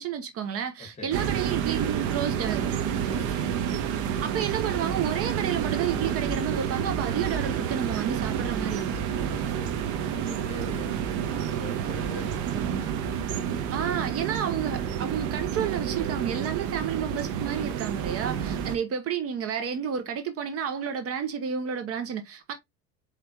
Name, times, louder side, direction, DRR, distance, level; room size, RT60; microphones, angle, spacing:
voice 1, 0.0-2.7 4.2-9.0 13.7-22.5, right 8 dB, 50° right, 0.9 m, -31 dB
voice 2, 0.8-1.2 3.0-3.6 9.2-13.0 18.4-18.6, left 3 dB, 20° left, 1.6 m, -44 dB
sound 1, 1.1-18.8, right 8 dB, 70° right, 1.1 m, -29 dB
4.7 x 3.3 x 2.8 m
supercardioid pair, 105°, 31 cm